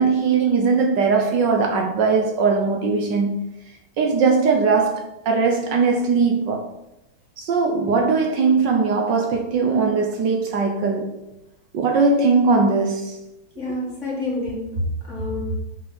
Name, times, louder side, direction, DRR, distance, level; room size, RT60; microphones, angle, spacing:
voice 1, 0.0-3.5 4.0-6.7 7.4-11.2 11.7-13.2, right 4 dB, 65° right, 1.4 m, -20 dB
voice 2, 13.6-15.6, left 1 dB, 35° left, 2.2 m, -27 dB
6.2 x 5.3 x 5.2 m
omnidirectional pair, 2.3 m